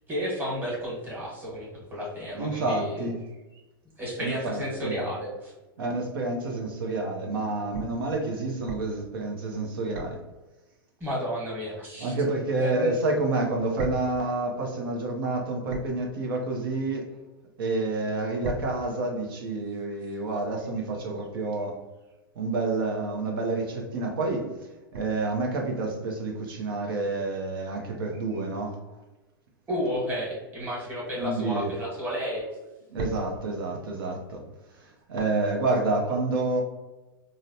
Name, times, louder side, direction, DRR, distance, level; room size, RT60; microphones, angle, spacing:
voice 1, 0.1-3.1 4.0-5.5 11.0-12.1 12.6-12.9 29.7-32.5, equal, 15° right, -5 dB, 1.4 m, -32 dB
voice 2, 2.4-3.1 4.2-5.0 5.8-10.2 12.0-17.1 17.6-21.8 22.4-24.5 24.9-28.8 31.2-31.7 32.9-34.4 34.7-36.6, right 2 dB, 70° right, 0 dB, 0.6 m, -29 dB
3.8 x 2.1 x 2.7 m, 1.1 s
hypercardioid pair, 115°, 12 cm